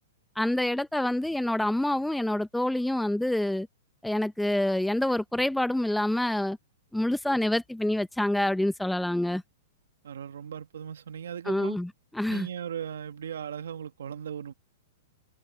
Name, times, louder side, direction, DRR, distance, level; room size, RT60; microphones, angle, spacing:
voice 1, 0.4-3.7 4.0-6.6 6.9-9.4 11.5-11.9 12.1-12.5, left 1 dB, ahead, 0.7 m, -27 dB
voice 2, 10.0-11.8 12.3-14.5, right 8 dB, 85° right, 1.8 m, -37 dB
hypercardioid pair, 165°, 0 cm